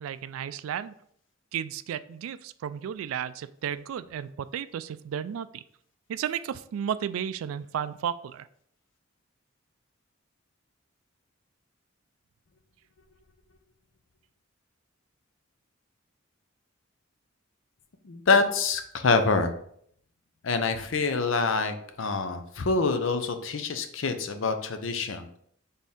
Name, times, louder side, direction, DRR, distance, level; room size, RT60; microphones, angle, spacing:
voice 1, 0.0-0.9 1.5-5.6 6.1-8.5, right 8 dB, 80° right, 14 dB, 0.3 m, -33 dB
voice 2, 18.0-19.5 20.4-25.3, left 4 dB, 65° left, 7 dB, 0.6 m, -26 dB
4.2 x 3.5 x 3.5 m, 0.65 s
head